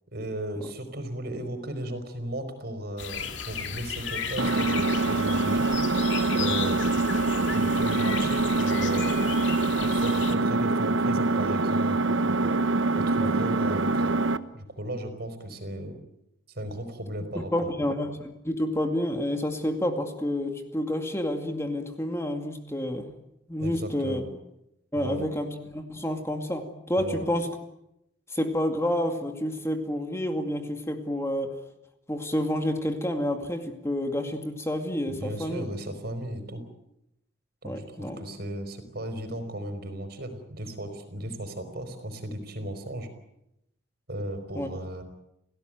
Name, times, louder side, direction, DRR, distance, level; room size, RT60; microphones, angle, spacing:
voice 1, 0.1-5.8 6.3-7.0 7.5-9.2 9.8-12.6 13.0-14.2 14.5-16.0 16.5-17.8 23.6-24.3 25.0-25.3 27.0-27.3 35.0-36.6 37.6-43.1 44.1-45.0, right 1 dB, 55° right, 9 dB, 4.9 m, -35 dB
sound 1, 3.0-10.4, left 7 dB, 70° left, 2.7 m, -35 dB
Engine, 4.4-14.4, right 3 dB, 75° right, 1.1 m, -24 dB
voice 2, 17.5-23.1 23.5-24.2 24.9-27.5 28.3-31.6 32.1-35.7 37.6-38.2 44.5-44.7, left 1 dB, 15° left, 5 dB, 2.2 m, -29 dB
30.0 x 17.5 x 9.2 m, 0.84 s
head